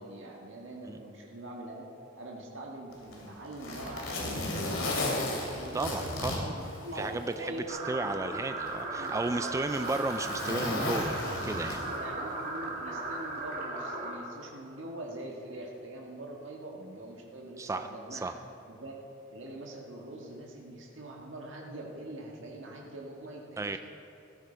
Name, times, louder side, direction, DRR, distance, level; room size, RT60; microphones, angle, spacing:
voice 1, 0.0-1.9 2.2-7.6 7.9-8.2 8.9-9.7 11.9-18.3 18.7-19.0 19.3-23.8, right 1 dB, 70° right, -1 dB, 1.8 m, -43 dB
Zipper (clothing), 2.9-7.4 7.8-7.9 8.7-12.1 13.3-13.5, left 1 dB, 75° left, 3.0 m, -34 dB
voice 2, 5.7-6.4 7.0-11.9 17.6-18.3 23.6-23.8, right 2 dB, 15° right, 8 dB, 0.3 m, -34 dB
sound 1, 7.7-14.1, right 2 dB, 50° right, 2.9 m, -37 dB
16.5 x 13.5 x 4.5 m, 2.8 s
head